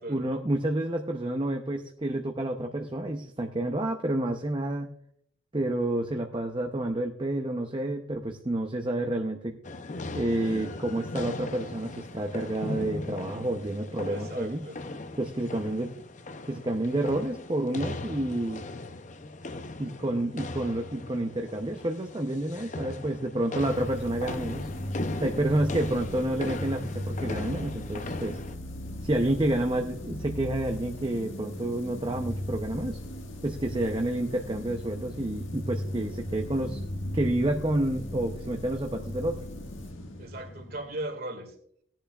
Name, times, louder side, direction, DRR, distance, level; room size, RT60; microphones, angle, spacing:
voice 1, 0.1-4.9 5.5-9.6 10.1-14.7 15.2-15.9 16.4-18.6 19.8-24.7 25.2-28.4 29.0-33.0 33.4-36.8 37.1-39.4, right 1 dB, 25° right, 3 dB, 0.6 m, -29 dB
sound 1, 9.6-28.6, left 2 dB, 40° left, 0.6 m, -38 dB
voice 2, 14.0-14.8 40.2-41.5, right 1 dB, 50° right, 6 dB, 2.0 m, -38 dB
sound 2, 23.6-41.1, left 1 dB, 80° left, 1.7 m, -37 dB
18.0 x 10.0 x 2.4 m, 0.64 s
head